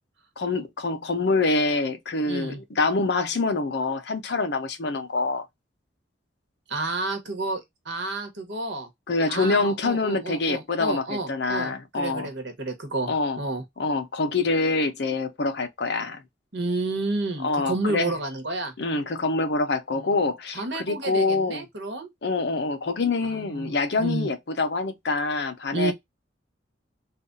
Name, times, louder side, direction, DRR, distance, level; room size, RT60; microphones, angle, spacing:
voice 1, 0.4-5.5 9.1-12.3 13.1-13.4 13.8-16.2 17.4-18.1 18.8-21.7 22.2-25.9, left 3 dB, 60° left, 0.6 m, -25 dB
voice 2, 2.3-2.6 6.7-8.9 9.3-13.6 16.5-18.7 19.9-20.2 20.5-22.1 23.2-24.3 25.7-25.9, right 2 dB, 65° right, 1.1 m, -30 dB
3.4 x 2.3 x 2.5 m
head